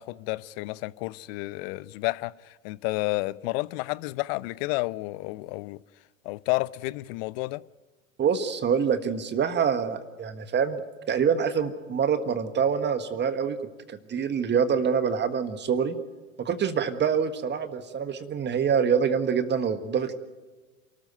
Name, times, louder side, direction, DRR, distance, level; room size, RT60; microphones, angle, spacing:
voice 1, 0.0-5.8 6.2-7.6, left 22 dB, 50° left, 0.7 m, -31 dB
voice 2, 8.2-10.8 11.1-13.6 13.9-15.9 16.4-20.1, right 7 dB, 25° right, 1.6 m, -25 dB
28.5 x 13.5 x 9.4 m
figure-of-eight pair, 85°, 39 cm